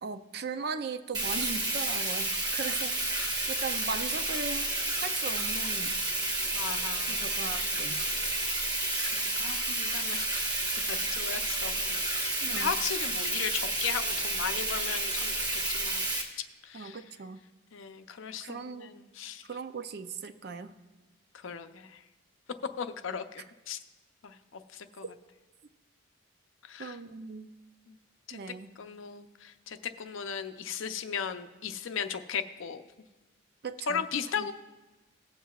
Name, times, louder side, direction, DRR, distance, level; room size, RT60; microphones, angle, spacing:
voice 1, 0.0-3.2 3.5-4.7 5.0-6.0 7.1-8.0 12.4-12.7 16.7-17.4 18.4-19.0 19.5-20.7 26.8-27.5 28.3-28.7 33.6-34.0 34.4-34.5, right 5 dB, 50° right, 10 dB, 0.5 m, -38 dB
Bathtub (filling or washing), 1.1-16.2, right 2 dB, 20° right, 1.3 m, -31 dB
voice 2, 6.5-7.3 8.6-10.4 10.9-16.0 16.6-17.0 17.7-19.5 21.3-22.0 22.6-23.8 24.2-25.1 26.6-27.0 27.9-28.0 28.3-32.8 33.9-34.5, left 7 dB, 70° left, 9 dB, 0.6 m, -37 dB
18.5 x 7.5 x 2.3 m, 1.1 s
head